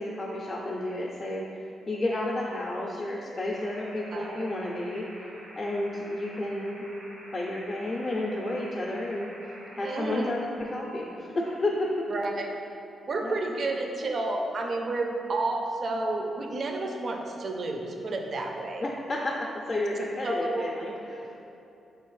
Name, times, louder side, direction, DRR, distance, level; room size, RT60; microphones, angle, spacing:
voice 1, 0.0-6.9 7.3-12.0 13.2-13.7 18.8-19.4 19.7-21.3, left 1 dB, 35° left, -3 dB, 0.4 m, -32 dB
sound 1, 3.5-10.3, right 1 dB, 90° right, 1.2 m, -48 dB
voice 2, 4.1-4.5 9.8-10.4 12.1-12.5 13.1-18.8 20.2-20.7, right 2 dB, 55° right, 2 dB, 0.4 m, -31 dB
4.1 x 3.3 x 3.1 m, 2.8 s
cardioid pair, 70°, 0 cm